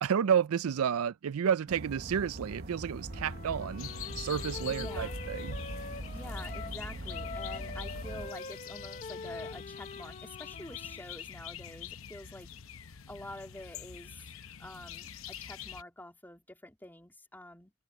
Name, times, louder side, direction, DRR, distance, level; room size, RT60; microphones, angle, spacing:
voice 1, 0.0-3.9 4.2-5.6, right 8 dB, 85° right, 0.4 m, -30 dB
sound 1, 1.7-8.3, right 1 dB, 45° right, 1.1 m, -41 dB
Wind instrument woodwind instrument, 3.1-6.8 7.1-11.0, left 4 dB, 35° left, 0.8 m, -45 dB
sound 2, 3.8-15.8, left 9 dB, 70° left, 0.8 m, -45 dB
voice 2, 4.7-5.2 6.1-12.5 13.1-14.2 14.6-17.7, left 1 dB, 10° left, 3.2 m, -47 dB
head